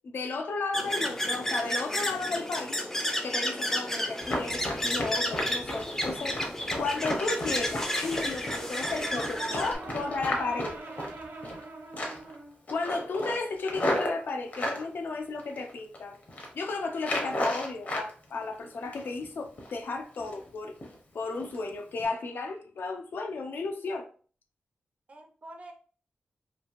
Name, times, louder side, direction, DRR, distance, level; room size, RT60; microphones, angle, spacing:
voice 1, 0.0-2.8 3.2-6.4 6.8-10.7 12.7-16.2 16.5-20.7 21.1-24.1, left 3 dB, 70° left, 0.4 m, -34 dB
sound 1, 0.7-9.8, left 1 dB, 10° left, 0.4 m, -32 dB
Run, 4.2-11.6 11.9-12.3 12.7-14.8 15.4-16.0 16.2-16.5 17.0-18.1 18.4-19.2 19.6-19.8 20.1-20.5 20.8-20.9 21.4-21.6 21.9-22.0, left 1 dB, 50° left, 0.8 m, -34 dB
Brass instrument, 8.4-12.6, right 2 dB, 85° right, 0.6 m, -44 dB
voice 2, 8.8-11.1 25.1-25.7, right 2 dB, 35° right, 0.5 m, -44 dB
3.0 x 2.5 x 2.5 m
wide cardioid pair, 135°, 4 cm